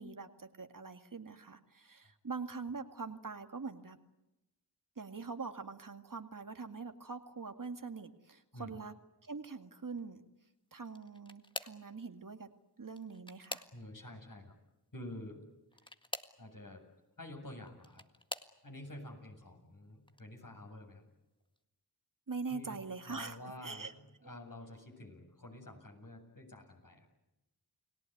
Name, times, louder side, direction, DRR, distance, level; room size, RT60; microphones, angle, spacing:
voice 1, 0.0-4.0 5.0-8.9 9.2-10.2 10.7-12.5 12.8-13.6 22.3-23.4 23.6-23.9 24.2-24.3, right 4 dB, 50° right, 7 dB, 2.1 m, -43 dB
sound 1, 10.8-11.9 12.8-14.1 15.7-16.4 17.5-18.6 19.3-19.7 20.1-20.2 21.6-21.7, left 1 dB, 10° left, 1.8 m, -45 dB
voice 2, 13.7-14.6 14.9-15.4 15.8-15.9 16.4-16.8 17.2-18.0 18.6-21.0 22.5-27.1, left 1 dB, 55° left, 2 dB, 7.8 m, -49 dB
30.0 x 18.0 x 9.5 m, 0.96 s
cardioid pair, 40°, 40 cm